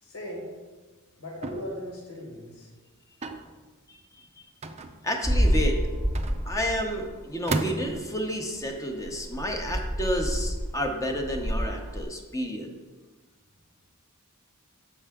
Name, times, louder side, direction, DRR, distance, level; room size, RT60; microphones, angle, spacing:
voice 1, 0.0-0.5 1.2-2.7, left 1 dB, 70° left, -2 dB, 1.6 m, -38 dB
sound 1, 1.4-1.9 3.2-3.5 4.6-5.3 6.1-6.8 7.5-8.2, right 3 dB, 30° right, 0.4 m, -33 dB
voice 2, 5.0-5.9 6.5-12.7, equal, 15° left, 3 dB, 0.7 m, -30 dB
sound 2, 5.2-7.2 7.5-7.6 8.2-8.3 8.5-8.7 9.0-12.0, equal, 10° right, 0.9 m, -28 dB
7.4 x 5.5 x 3.5 m, 1.3 s
head